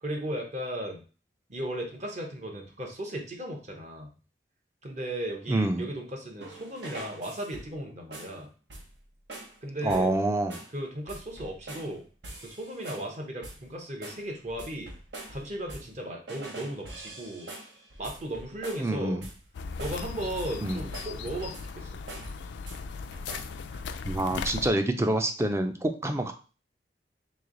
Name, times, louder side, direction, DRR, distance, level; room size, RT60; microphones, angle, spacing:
voice 1, 0.0-1.0 1.5-4.1 4.8-8.5 9.6-10.1 10.7-12.0 12.4-14.9 15.3-17.5 18.0-19.2 19.8-21.9, right 1 dB, 40° right, 1 dB, 0.9 m, -36 dB
voice 2, 5.5-5.9 9.8-10.6 18.8-19.2 20.6-20.8 24.0-26.3, right 1 dB, 15° right, 6 dB, 0.4 m, -27 dB
sound 1, 6.4-7.8 8.1-8.4 8.7-9.0 9.3-9.6 9.9-10.2 10.5-10.8 11.1-11.9 12.2-13.1 13.4-13.7 14.0-16.0 16.3-18.9 19.2-19.5 19.8-20.1 20.4-21.8 22.1-22.8 23.1-23.6, right 2 dB, 80° right, 1.0 m, -44 dB
sound 2, 19.5-24.7, left 5 dB, 85° left, 0.3 m, -37 dB
3.1 x 3.1 x 3.8 m, 0.36 s
head